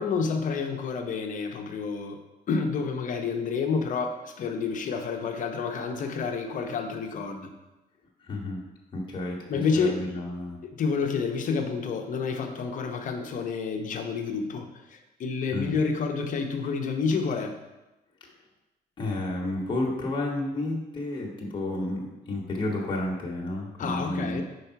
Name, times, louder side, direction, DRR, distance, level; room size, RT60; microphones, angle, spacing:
voice 1, 0.0-7.5 9.5-10.0 10.6-17.6 23.8-24.4, left 5 dB, 50° left, 4 dB, 0.8 m, -29 dB
voice 2, 8.2-8.6 8.9-10.6 15.5-15.7 19.0-24.4, left 1 dB, 30° left, -2 dB, 1.4 m, -31 dB
5.3 x 4.7 x 4.5 m, 1.0 s
cardioid pair, 110°, 17 cm